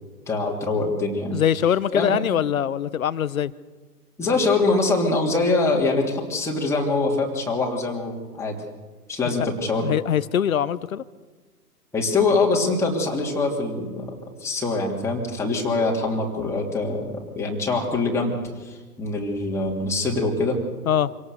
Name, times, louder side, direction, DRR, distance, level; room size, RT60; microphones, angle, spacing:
voice 1, 0.3-1.4 1.9-2.2 4.2-8.6 9.1-9.9 11.9-18.3 18.6-20.6, left 3 dB, 5° left, -2 dB, 3.1 m, -24 dB
voice 2, 1.3-3.5 9.8-11.0 20.9-21.1, left 9 dB, 60° left, 18 dB, 1.0 m, -23 dB
26.0 x 18.0 x 6.8 m, 1.3 s
figure-of-eight pair, 125°, 47 cm